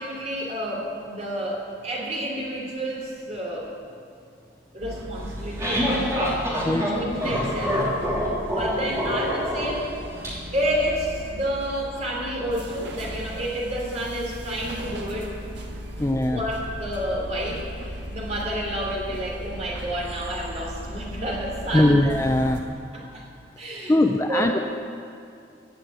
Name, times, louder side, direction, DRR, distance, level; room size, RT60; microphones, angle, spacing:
voice 1, 0.0-3.7 4.7-6.1 6.6-7.9 8.5-9.9 10.5-15.4 16.3-22.0 22.9-23.2 23.6-24.6, right 1 dB, 35° right, -2 dB, 3.1 m, -30 dB
sound 1, 4.8-22.6, equal, 70° right, 1.7 m, -37 dB
sound 2, 5.2-10.3, equal, 15° right, 3.1 m, -26 dB
voice 2, 16.0-16.4 21.7-22.6 23.9-24.6, left 1 dB, 15° left, 4 dB, 0.4 m, -20 dB
15.0 x 6.6 x 9.1 m, 2.5 s
head